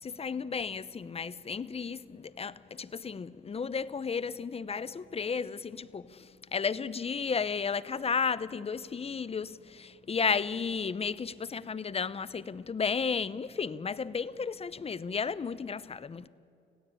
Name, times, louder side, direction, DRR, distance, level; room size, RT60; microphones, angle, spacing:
voice 1, 0.0-16.3, left 5 dB, 30° left, 0.8 m, -33 dB
26.0 x 16.5 x 8.8 m
cardioid pair, 90°, 20 cm